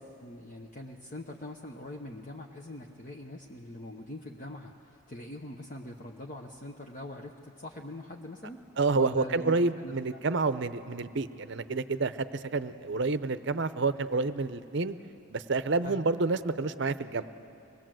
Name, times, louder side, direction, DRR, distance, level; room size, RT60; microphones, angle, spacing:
voice 1, 0.2-8.6 8.9-10.2 15.8-16.0, left 1 dB, 35° left, 1 dB, 0.9 m, -43 dB
voice 2, 8.8-15.0 15.3-17.2, right 3 dB, 55° right, 12 dB, 0.7 m, -29 dB
25.5 x 20.0 x 7.7 m, 2.7 s
head